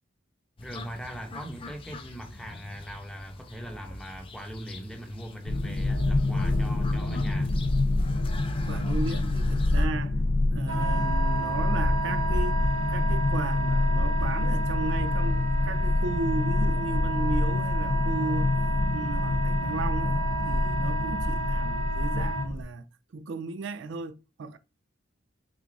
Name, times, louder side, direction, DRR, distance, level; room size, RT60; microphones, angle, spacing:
sound 1, 0.6-9.9, left 3 dB, 25° left, 0.5 m, -45 dB
voice 1, 0.6-7.5, equal, 5° left, 0.8 m, -40 dB
sound 2, 5.5-22.6, left 2 dB, 75° left, 0.7 m, -26 dB
voice 2, 8.6-10.2 10.5-18.5 18.9-20.2 20.4-22.9 23.1-24.6, right 3 dB, 65° right, 0.4 m, -35 dB
Wind instrument woodwind instrument, 10.7-22.5, right 3 dB, 90° left, 1.4 m, -33 dB
6.1 x 2.4 x 2.6 m
head